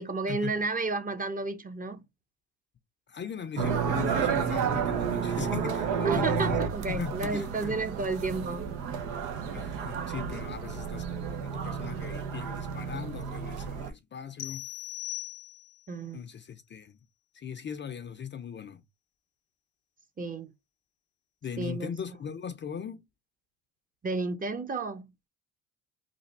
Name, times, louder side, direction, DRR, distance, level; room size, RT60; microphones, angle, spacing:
voice 1, 0.0-2.0 6.0-8.8 15.9-16.2 20.2-20.5 21.6-21.9 24.0-25.1, right 3 dB, 25° right, 0.7 m, -32 dB
voice 2, 3.1-6.6 6.9-7.8 9.5-14.7 16.1-17.0 17.3-18.8 21.4-23.0, left 7 dB, 30° left, 0.5 m, -39 dB
sound 1, 3.6-13.9, right 6 dB, 85° right, 0.8 m, -31 dB
sound 2, 14.4-15.9, left 16 dB, 75° left, 0.7 m, -39 dB
3.3 x 2.5 x 4.1 m
supercardioid pair, 80°, 36 cm